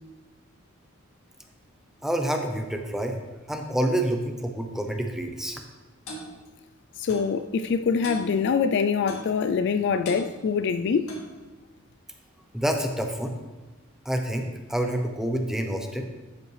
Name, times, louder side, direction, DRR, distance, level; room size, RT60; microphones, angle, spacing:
voice 1, 2.0-3.2 3.5-5.6 12.5-13.3 14.1-16.1, right 1 dB, ahead, 0.6 m, -28 dB
Clock, 6.1-6.3 7.1-7.3 8.0-8.3 9.1-9.3 10.0-10.3 11.1-11.3, equal, 85° left, 1.8 m, -38 dB
voice 2, 7.0-11.2, left 5 dB, 55° left, 0.3 m, -24 dB
12.0 x 5.3 x 3.2 m
head